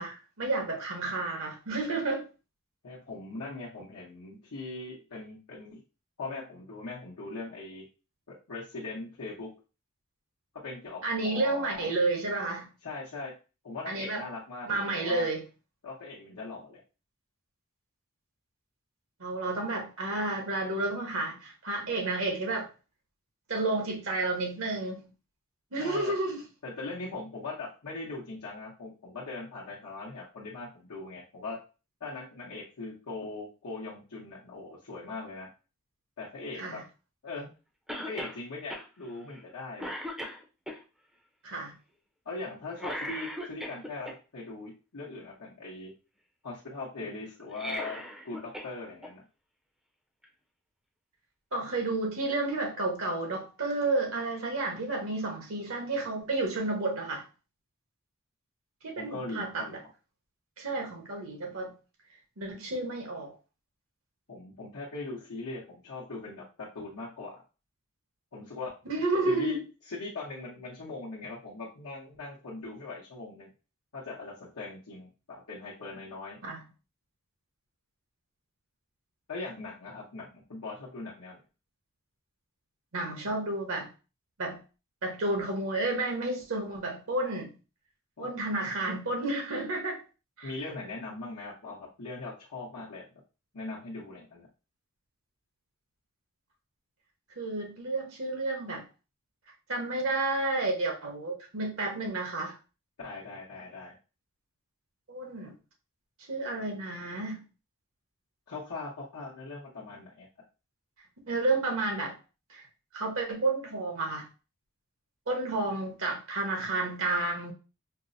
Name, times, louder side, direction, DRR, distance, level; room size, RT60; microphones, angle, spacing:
voice 1, 0.0-2.3 11.0-12.7 13.9-14.2 14.7-15.4 19.2-22.7 23.5-25.1 25.7-26.4 36.6-36.8 41.4-41.7 51.5-57.2 58.8-59.8 60.6-61.7 62.4-63.3 68.9-69.6 76.4-76.6 82.9-83.9 84.4-84.6 85.0-87.5 88.2-90.0 90.4-90.5 97.4-98.8 99.7-102.6 105.1-105.5 106.3-107.4 111.3-112.1 112.5-112.6 112.9-114.3 115.3-117.5, right 2 dB, 65° right, 2 dB, 1.0 m, -31 dB
voice 2, 2.8-5.8 6.2-7.8 8.5-9.5 10.6-11.9 12.8-13.3 13.6-15.3 15.8-16.8 25.8-26.1 26.6-31.6 32.0-35.5 36.2-36.8 37.2-37.5 37.9-39.9 42.2-45.9 46.4-48.0 48.2-49.2 59.0-59.7 64.3-66.4 66.7-67.3 68.3-68.7 69.2-69.6 69.9-73.5 73.9-76.4 79.3-81.4 88.2-88.3 88.6-88.7 90.4-93.0 93.5-94.5 103.0-103.9 108.5-110.3, left 3 dB, 85° left, -7 dB, 0.9 m, -40 dB
Cough, 37.9-38.4 38.7-38.9 39.3-39.5 39.8-40.8 42.8-44.1 47.4-48.7 49.0-49.1 50.2-50.3, equal, 5° right, 0.5 m, -38 dB
4.5 x 2.0 x 2.6 m, 0.32 s
head